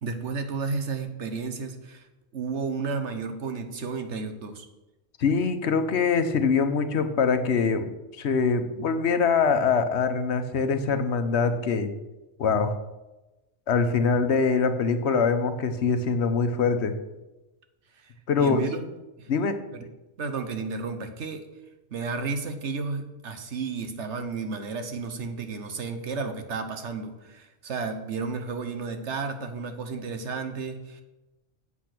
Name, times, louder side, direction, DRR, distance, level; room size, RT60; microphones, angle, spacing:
voice 1, 0.0-2.1 2.3-4.7 18.0-18.8 19.2-19.3 19.7-19.9 20.2-21.5 21.9-31.0, right 4 dB, 80° right, 7 dB, 1.4 m, -32 dB
voice 2, 5.2-11.9 12.4-12.7 13.7-16.9 18.3-18.6 19.3-19.6, left 5 dB, 70° left, 9 dB, 1.1 m, -23 dB
8.5 x 7.4 x 6.0 m, 1.0 s
omnidirectional pair, 1.2 m